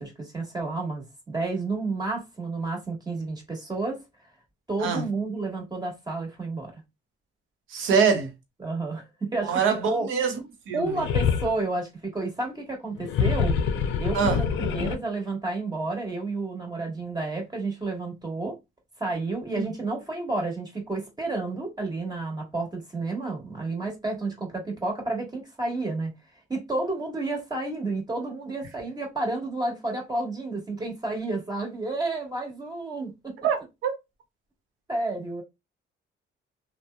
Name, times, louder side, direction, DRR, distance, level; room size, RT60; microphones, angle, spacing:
voice 1, 0.0-4.0 4.7-6.7 8.6-10.1 10.7-13.5 14.0-18.6 19.0-26.1 26.5-33.4 34.9-35.4, right 3 dB, 20° right, 1.3 m, -31 dB
voice 2, 7.7-8.3 9.4-10.3 10.7-10.8 14.1-14.4 19.5-19.7 33.4-33.9, right 6 dB, 85° right, 0.8 m, -24 dB
sound 1, 10.9-11.6 13.0-15.0, left 7 dB, 75° left, 0.4 m, -25 dB
2.8 x 2.1 x 2.2 m
cardioid pair, 90°, 20 cm